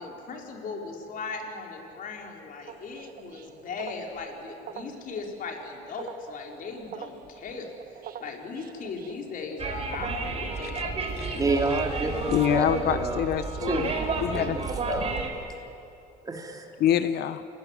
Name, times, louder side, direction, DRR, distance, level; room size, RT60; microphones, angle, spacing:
voice 1, 0.0-7.7 8.2-11.0, left 4 dB, 55° left, 1 dB, 4.4 m, -38 dB
sound 1, 2.7-15.2, right 8 dB, 60° right, 1.4 m, -45 dB
sound 2, 9.6-15.3, right 3 dB, 35° right, 4.3 m, -31 dB
voice 2, 11.3-13.2 13.6-15.6 16.2-16.7, right 3 dB, 20° right, 2 dB, 3.3 m, -30 dB
voice 3, 12.3-13.9 14.2-14.7 16.8-17.5, left 10 dB, 70° left, 12 dB, 1.1 m, -26 dB
28.5 x 18.5 x 9.8 m, 2.8 s
cardioid pair, 110°, 17 cm